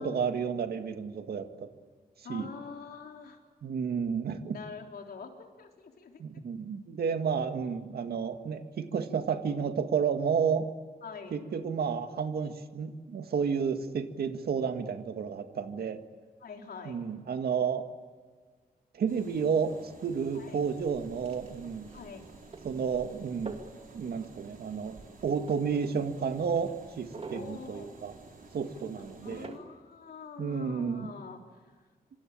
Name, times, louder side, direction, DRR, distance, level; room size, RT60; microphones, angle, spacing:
voice 1, 0.0-1.7 2.3-2.5 3.6-4.6 6.2-10.7 11.3-16.0 16.9-17.9 18.9-21.9 22.6-23.6 23.9-28.1 28.5-29.5 30.4-31.1, right 6 dB, 80° right, 7 dB, 2.0 m, -31 dB
voice 2, 2.2-3.4 4.5-6.2 11.0-11.4 16.4-17.0 20.3-20.6 21.9-22.2 27.3-27.9 29.0-31.4, left 5 dB, 80° left, 2 dB, 3.7 m, -45 dB
sound 1, 19.1-29.5, right 3 dB, 65° right, 5.6 m, -53 dB
sound 2, 20.6-29.6, right 3 dB, 40° right, 2.4 m, -49 dB
26.5 x 25.0 x 8.8 m, 1.5 s
wide cardioid pair, 120°, 16 cm